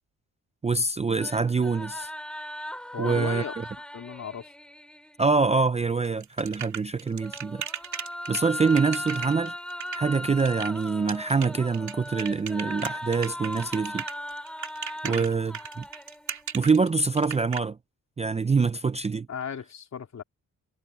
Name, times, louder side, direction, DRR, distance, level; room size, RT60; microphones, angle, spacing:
voice 1, 0.6-2.1 3.0-3.4 5.2-7.6 8.3-9.5 9.9-14.0 15.0-15.8 16.5-17.8 18.2-19.3, right 4 dB, 20° right, 0.4 m, -25 dB
sound 1, 1.2-5.2 7.0-16.5, equal, 5° left, 3.3 m, -38 dB
voice 2, 2.9-3.5 3.9-4.5 15.0-15.3 19.3-20.2, left 7 dB, 55° left, 3.1 m, -36 dB
sound 2, 6.0-17.6, right 8 dB, 55° right, 2.6 m, -36 dB
wide cardioid pair, 140°, 34 cm